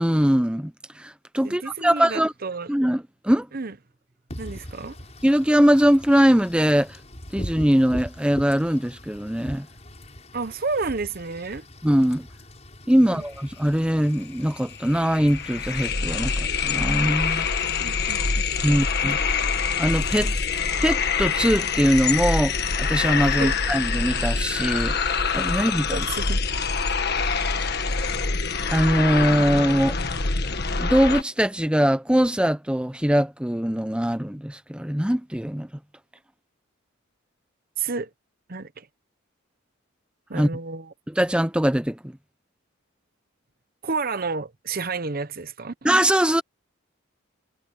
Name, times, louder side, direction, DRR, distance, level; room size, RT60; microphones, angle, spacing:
voice 1, 0.0-2.3 2.7-3.5 5.2-7.0 7.3-9.7 11.8-12.3 12.9-17.5 18.6-19.2 19.8-20.3 20.8-25.0 25.3-26.0 28.7-30.0 30.8-35.7 40.3-40.5 41.1-42.0 45.8-46.4, equal, 5° right, 0.7 m, -21 dB
voice 2, 1.4-2.7 3.5-3.8 4.4-5.0 10.3-11.6 13.0-13.2 17.8-18.8 23.4-23.5 25.9-26.4 27.0-27.1 37.8-38.1 38.5-38.9 40.3-40.9 43.8-45.7, right 4 dB, 45° right, 0.8 m, -31 dB
Wind / Rain, 4.3-16.0, equal, 30° left, 7.1 m, -41 dB
sound 1, 14.2-14.3 14.5-31.2, left 5 dB, 50° left, 1.6 m, -25 dB
head